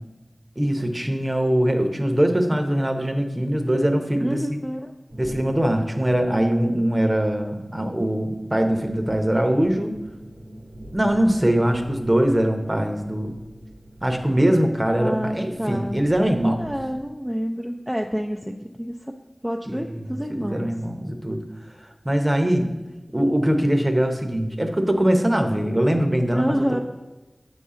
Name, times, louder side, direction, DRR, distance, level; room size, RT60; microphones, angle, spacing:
voice 1, 0.6-4.6 5.2-10.0 10.9-13.3 14.0-16.6 19.7-21.4 22.0-22.7 23.1-26.5, right 1 dB, 25° right, 5 dB, 0.8 m, -22 dB
voice 2, 4.2-4.9 15.0-16.0 16.6-19.1 19.4-20.7 26.3-26.8, equal, 5° right, 2 dB, 0.4 m, -28 dB
sound 1, 5.1-17.1, right 1 dB, 90° right, 1.2 m, -43 dB
7.7 x 5.6 x 3.7 m, 1.1 s
wide cardioid pair, 65°, 0 cm